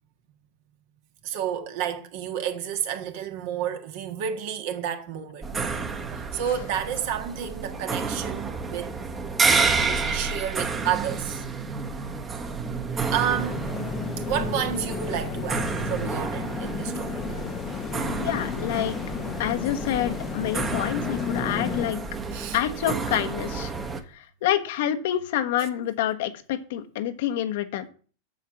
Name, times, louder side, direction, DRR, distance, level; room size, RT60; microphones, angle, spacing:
voice 1, 1.2-5.5 6.1-8.9 9.8-11.4 12.4-17.2 22.3-22.6 25.6-25.7, right 8 dB, 50° right, 1.6 m, -30 dB
sound 1, 5.4-24.0, right 4 dB, 20° right, 1.3 m, -30 dB
sound 2, 13.3-21.9, left 8 dB, 30° left, 0.8 m, -33 dB
voice 2, 18.2-19.0 19.4-22.0 22.5-23.7 24.4-27.8, left 11 dB, 55° left, 1.1 m, -27 dB
8.2 x 7.2 x 5.9 m
figure-of-eight pair, 90°, 0 cm